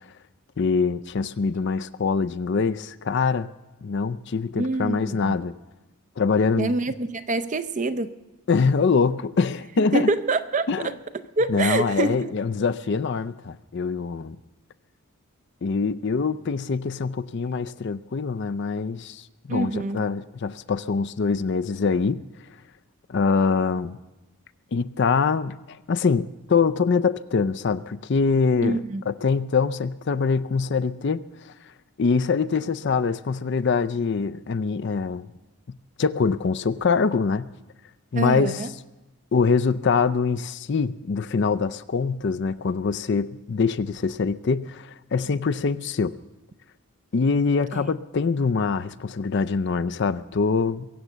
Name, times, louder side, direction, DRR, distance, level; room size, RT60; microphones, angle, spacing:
voice 1, 0.6-3.5 3.8-5.5 6.2-6.7 8.5-10.1 10.7-10.9 11.5-14.4 15.6-22.2 23.1-24.0 24.7-31.5 32.0-35.3 35.7-37.5 38.1-38.7 39.3-46.1 47.1-50.9, left 5 dB, 50° left, 0.4 m, -24 dB
voice 2, 4.6-5.4 6.6-8.1 9.8-10.9 11.4-12.3 19.5-20.0 28.6-29.0 38.1-38.7 47.7-47.8, right 2 dB, 35° right, 0.5 m, -26 dB
22.5 x 8.0 x 7.3 m
head